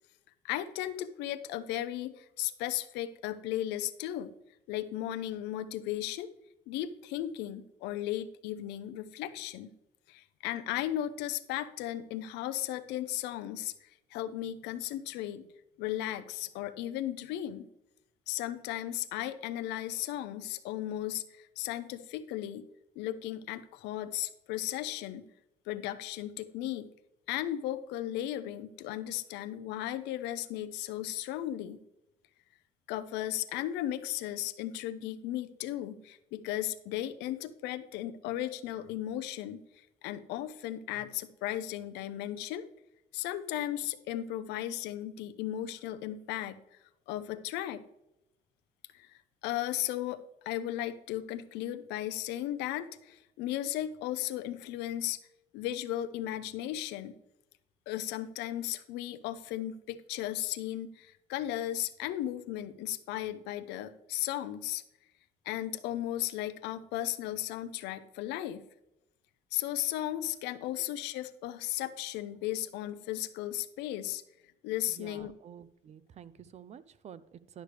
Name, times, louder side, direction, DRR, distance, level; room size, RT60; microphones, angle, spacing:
voice 1, 0.4-4.3 4.7-6.3 6.7-9.7 10.1-15.5 15.8-17.7 18.3-22.7 23.0-25.3 25.7-26.9 27.3-31.8 32.9-42.7 43.1-46.6 47.1-47.8 48.9-49.1 49.4-55.2 55.5-57.2 57.9-64.8 65.5-68.7 69.5-74.2 74.6-75.3, left 13 dB, 90° left, 11 dB, 0.6 m, -36 dB
voice 2, 74.9-77.6, right 8 dB, 40° right, 16 dB, 0.5 m, -50 dB
11.0 x 6.5 x 3.3 m, 0.87 s
cardioid pair, 110°, 17 cm